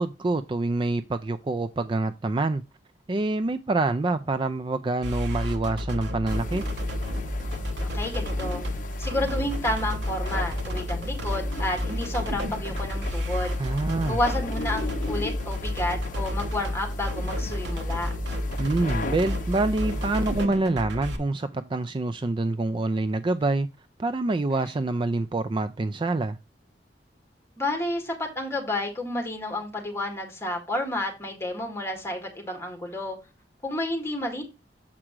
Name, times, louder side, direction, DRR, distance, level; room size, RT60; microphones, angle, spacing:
voice 1, 0.0-2.6 3.1-6.6 13.6-14.2 18.6-23.7 24.0-26.4, right 2 dB, 30° right, 0.4 m, -26 dB
sound 1, 5.0-21.2, left 1 dB, 70° right, 1.2 m, -32 dB
sound 2, 6.3-20.5, left 1 dB, 45° left, 0.7 m, -34 dB
voice 2, 7.8-8.6 9.0-13.5 14.1-18.1 27.6-33.2 33.6-34.4, left 1 dB, 15° left, 1.9 m, -30 dB
7.4 x 4.9 x 4.6 m
head